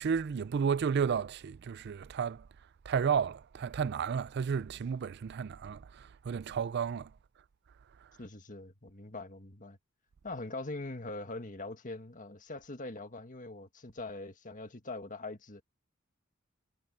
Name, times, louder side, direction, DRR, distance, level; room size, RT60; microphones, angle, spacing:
voice 1, 0.0-2.5 2.8-7.1 8.0-8.1, right 6 dB, 55° right, 0.4 m, -32 dB
voice 2, 8.2-9.8 10.2-15.6, left 2 dB, 40° left, 1.8 m, -42 dB
head